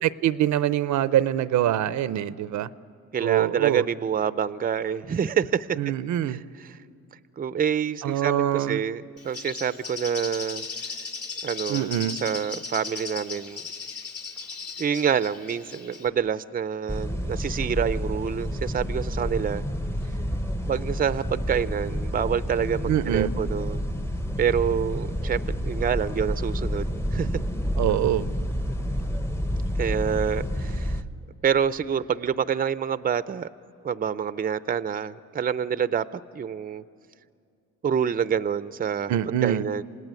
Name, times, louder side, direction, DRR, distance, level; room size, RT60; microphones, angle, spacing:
voice 1, 0.0-2.7 3.2-3.8 5.8-6.4 8.0-8.8 11.7-12.2 22.9-23.3 27.8-28.3 39.1-39.6, right 12 dB, 70° right, 16 dB, 0.7 m, -24 dB
voice 2, 3.1-5.8 6.3-6.8 7.4-10.7 11.4-11.9 12.2-13.6 14.8-19.6 20.6-23.8 24.4-27.4 29.8-31.0 31.4-33.5 33.8-36.8 37.8-39.8, right 8 dB, 30° right, 15 dB, 0.6 m, -27 dB
Bird, 9.2-16.1, left 4 dB, 50° left, 2.4 m, -37 dB
sound 1, 16.9-31.0, equal, 10° left, 0.9 m, -29 dB
27.0 x 18.0 x 9.5 m, 2.4 s
cardioid pair, 90°, 30 cm